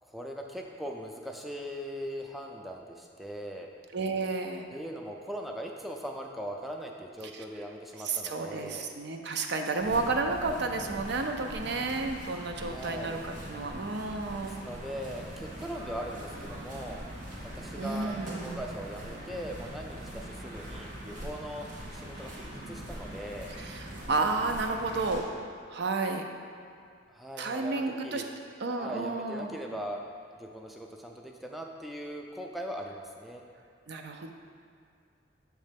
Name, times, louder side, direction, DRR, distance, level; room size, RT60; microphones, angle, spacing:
voice 1, 0.0-3.7 4.7-8.9 12.6-13.2 14.4-17.0 17.5-23.5 27.1-28.3 28.7-30.0 30.4-33.4, equal, ahead, 1 dB, 0.3 m, -40 dB
voice 2, 3.9-4.6 7.3-7.4 8.0-14.6 17.7-18.6 23.6-25.2 25.7-26.2 27.4-28.2 28.6-29.5 33.9-34.3, right 3 dB, 65° right, 4 dB, 0.5 m, -31 dB
sound 1, 9.8-25.2, right 1 dB, 50° right, 1.5 m, -42 dB
6.4 x 3.2 x 5.2 m, 2.3 s
head